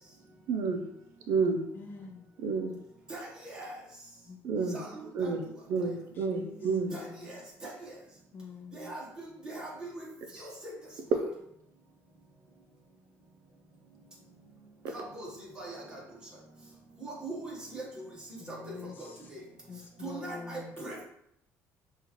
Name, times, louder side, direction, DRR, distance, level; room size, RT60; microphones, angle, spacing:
voice 1, 0.5-0.9 1.3-1.6 2.4-2.8 4.4-4.8 5.1-6.9 14.8-14.9, right 4 dB, 60° right, 4 dB, 0.5 m, -30 dB
voice 2, 1.7-2.3 4.2-5.0 6.1-7.2 8.3-8.9 18.4-19.3 19.7-20.7, left 4 dB, 35° left, 3 dB, 0.4 m, -46 dB
voice 3, 3.1-3.7 4.7-5.3 6.9-7.7 8.7-10.1 10.3-10.7 14.9-16.0 17.0-18.1 18.5-18.7 19.0-19.4 20.0-21.0, right 2 dB, 15° right, -4 dB, 1.0 m, -41 dB
5.4 x 2.4 x 2.9 m, 0.75 s
cardioid pair, 165°, 6 cm